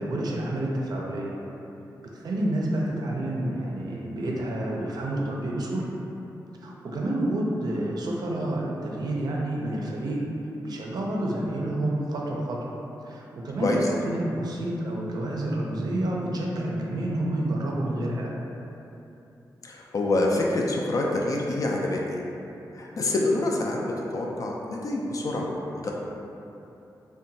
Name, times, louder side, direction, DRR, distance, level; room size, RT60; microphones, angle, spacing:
voice 1, 0.0-1.3 2.0-5.9 6.6-10.2 10.6-12.7 13.0-18.3, right 1 dB, 65° right, -3 dB, 0.4 m, -29 dB
voice 2, 19.6-22.2 22.7-25.9, left 2 dB, 50° left, -2 dB, 0.3 m, -26 dB
2.8 x 2.2 x 2.6 m, 2.9 s
wide cardioid pair, 110°, 7 cm